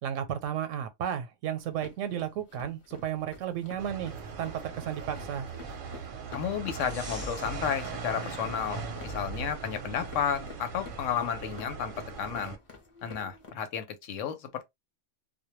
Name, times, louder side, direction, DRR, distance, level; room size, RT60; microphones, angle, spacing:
voice 1, 0.0-5.5, right 9 dB, 85° right, 0.9 m, -33 dB
sound 1, 1.6-13.5, left 3 dB, 35° left, 0.6 m, -50 dB
sound 2, 3.8-12.6, right 5 dB, 55° right, 0.7 m, -40 dB
voice 2, 6.3-12.6 13.0-14.6, left 8 dB, 90° left, 1.0 m, -32 dB
sound 3, 6.7-11.1, right 1 dB, 10° right, 0.6 m, -49 dB
2.2 x 2.1 x 2.9 m
omnidirectional pair, 1.3 m